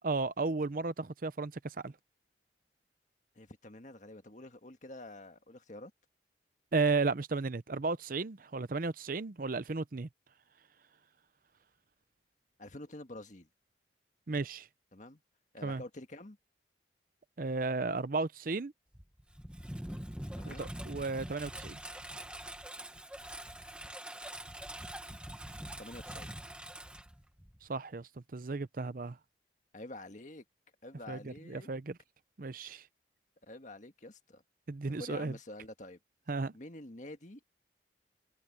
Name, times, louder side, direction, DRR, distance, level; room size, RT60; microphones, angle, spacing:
voice 1, 0.0-1.5 1.8-1.9 6.7-10.1 14.3-14.7 15.6-15.8 17.4-18.7 20.5-21.8 27.7-29.2 31.1-31.2 31.5-31.9 32.4-32.8 34.7-35.3 36.3-36.5, right 3 dB, 50° right, 0.6 m, -34 dB
voice 2, 3.4-5.9 12.6-13.5 14.9-15.2 15.5-16.4 20.3-20.7 25.8-26.4 29.7-30.4 30.8-31.7 33.4-34.4 34.9-36.0 36.5-37.5, left 1 dB, 40° left, 1.7 m, -48 dB
Engine, 18.9-27.7, right 1 dB, 5° right, 1.3 m, -44 dB
head